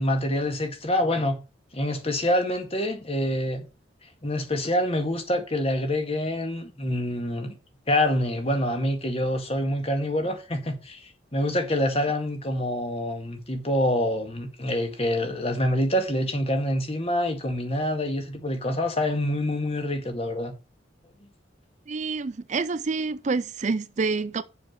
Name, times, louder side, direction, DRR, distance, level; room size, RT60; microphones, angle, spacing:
voice 1, 0.0-1.4 1.7-3.6 4.2-7.6 7.9-20.5, left 1 dB, 30° left, 2.0 m, -26 dB
voice 2, 21.9-24.4, right 4 dB, 40° right, 0.4 m, -27 dB
7.0 x 5.9 x 7.5 m
head